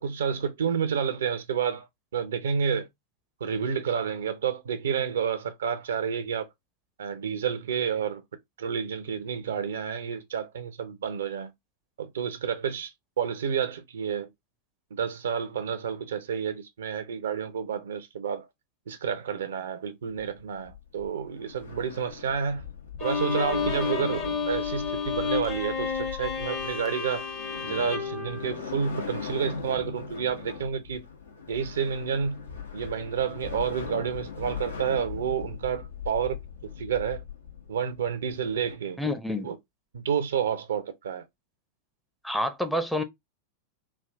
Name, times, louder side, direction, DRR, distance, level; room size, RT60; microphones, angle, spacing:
voice 1, 0.0-1.9 2.1-2.9 3.4-6.5 7.0-8.2 8.6-11.5 12.0-12.9 13.2-14.3 14.9-18.4 18.9-22.6 23.0-27.2 27.6-31.0 31.5-32.4 32.7-36.4 36.8-37.2 37.7-39.0 39.4-39.6 39.9-41.2, right 7 dB, 65° right, 0.6 m, -30 dB
sound 1, 20.1-38.8, left 6 dB, 75° left, 0.9 m, -40 dB
Bowed string instrument, 23.0-29.3, left 6 dB, 35° left, 0.9 m, -31 dB
voice 2, 39.0-39.5 42.2-43.0, left 1 dB, ahead, 0.6 m, -28 dB
3.5 x 2.4 x 3.6 m
figure-of-eight pair, 90°, 0 cm